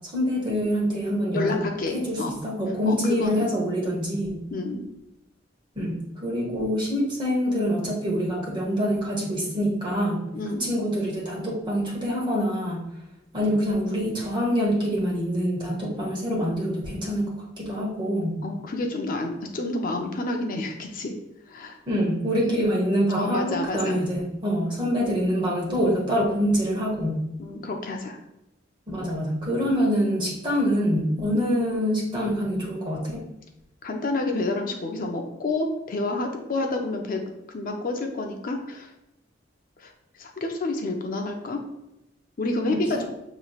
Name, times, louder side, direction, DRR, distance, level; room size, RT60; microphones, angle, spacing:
voice 1, 0.1-1.6 1.9-4.4 5.7-10.2 10.6-12.8 13.3-18.4 21.9-27.2 28.9-33.2 42.5-43.0, equal, 25° right, -3 dB, 1.1 m, -25 dB
voice 2, 1.3-2.4 2.8-3.4 4.5-4.8 10.3-10.7 18.4-21.1 21.5-21.8 22.4-22.7 23.2-24.0 27.4-28.2 33.8-37.2 37.5-38.9 39.8-41.6 42.4-43.0, left 2 dB, 45° left, 3 dB, 0.5 m, -29 dB
6.6 x 3.1 x 2.4 m, 0.87 s
head